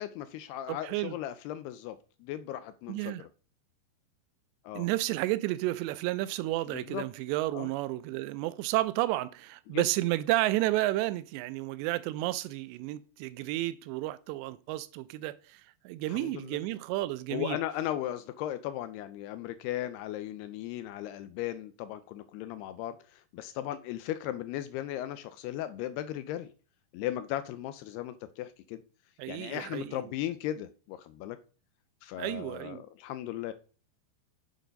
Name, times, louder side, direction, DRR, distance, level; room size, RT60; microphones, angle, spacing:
voice 1, 0.0-3.3 4.6-4.9 6.7-7.0 7.5-7.7 9.7-9.9 16.1-16.6 17.3-26.5 26.9-28.8 29.3-31.4 32.0-33.5, left 13 dB, 80° left, 2.5 m, -37 dB
voice 2, 0.7-1.2 2.9-3.2 4.8-17.6 29.2-30.1 32.2-32.8, right 17 dB, 85° right, 2.7 m, -31 dB
8.3 x 7.6 x 5.2 m
omnidirectional pair, 5.1 m